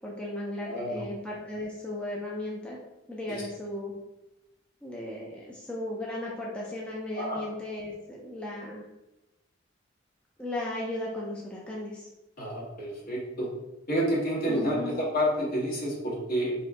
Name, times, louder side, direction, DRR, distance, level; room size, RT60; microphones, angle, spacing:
voice 1, 0.0-2.8 3.1-3.9 4.8-8.8 10.4-12.1 14.5-15.0, left 1 dB, 5° left, -4 dB, 0.4 m, -36 dB
voice 2, 0.6-1.0 3.3-3.4 7.1-7.4 12.4-13.5 13.9-16.5, equal, 50° left, -4 dB, 1.0 m, -29 dB
3.4 x 2.8 x 2.5 m, 0.99 s
head